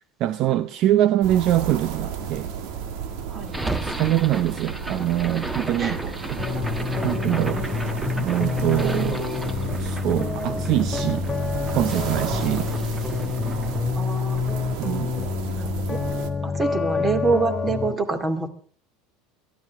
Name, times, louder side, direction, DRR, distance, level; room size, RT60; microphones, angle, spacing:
voice 1, 0.2-2.5 3.8-6.0 6.3-6.4 7.0-7.6 8.2-9.3 9.8-11.2 11.7-12.7 14.8-15.1, right 13 dB, 50° right, 0.6 m, -23 dB
sound 1, 1.2-16.3, right 7 dB, 65° right, 1.9 m, -33 dB
sound 2, 3.5-15.7, right 1 dB, 10° right, 1.2 m, -35 dB
voice 2, 5.6-6.1 14.0-14.4 15.6-16.0 16.4-18.5, right 4 dB, 25° right, 2.3 m, -26 dB
sound 3, 6.4-17.9, left 5 dB, 15° left, 2.3 m, -28 dB
22.5 x 13.5 x 3.5 m
supercardioid pair, 115°, 0 cm